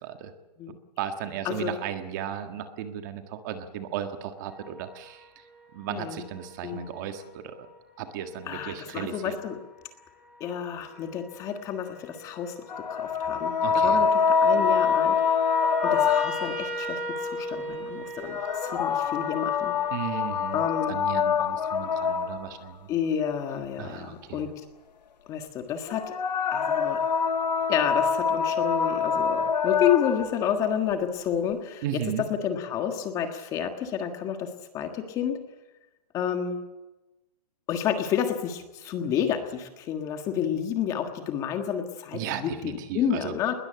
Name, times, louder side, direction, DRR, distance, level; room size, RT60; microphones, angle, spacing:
voice 1, 0.0-0.3 1.0-5.2 5.7-7.7 8.0-9.3 13.6-14.0 19.9-22.8 23.8-24.5 31.8-32.2 42.1-43.3, right 9 dB, 25° right, 8 dB, 1.7 m, -35 dB
sound 1, 4.5-7.7 8.7-8.8 9.3-9.7 10.4-10.8 11.1-20.9, left 1 dB, 5° right, 4.4 m, -39 dB
voice 2, 5.9-6.3 6.6-6.9 8.5-9.6 10.4-12.5 12.9-15.2 15.8-19.7 20.5-20.9 22.9-24.5 25.3-26.1 26.5-27.0 27.7-35.4 36.1-36.6 37.7-43.5, left 8 dB, 15° left, 6 dB, 1.5 m, -30 dB
sound 2, 12.7-16.7 18.2-22.7 25.9-30.3, left 6 dB, 85° left, 1.8 m, -25 dB
21.0 x 20.0 x 8.9 m, 1.0 s
hypercardioid pair, 170°, 21 cm